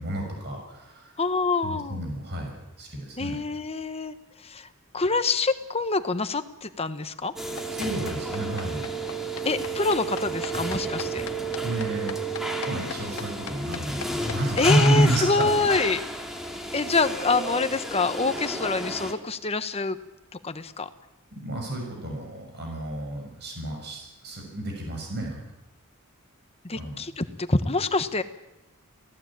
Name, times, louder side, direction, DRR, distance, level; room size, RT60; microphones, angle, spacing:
voice 1, 0.0-1.1 1.6-3.4 7.7-8.9 11.6-12.1 12.7-15.5 21.3-25.4 26.7-27.0, right 1 dB, 50° right, 2 dB, 6.5 m, -29 dB
voice 2, 1.2-2.0 3.2-4.1 4.4-4.7 4.9-7.3 9.4-11.3 14.6-16.0 16.7-20.0 20.4-20.9 26.6-28.2, left 3 dB, 30° left, 10 dB, 1.2 m, -26 dB
sound 1, 7.4-19.1, right 2 dB, ahead, 2.6 m, -32 dB
sound 2, 7.6-15.5, left 6 dB, 80° left, 1.1 m, -38 dB
26.0 x 17.5 x 8.8 m, 0.96 s
head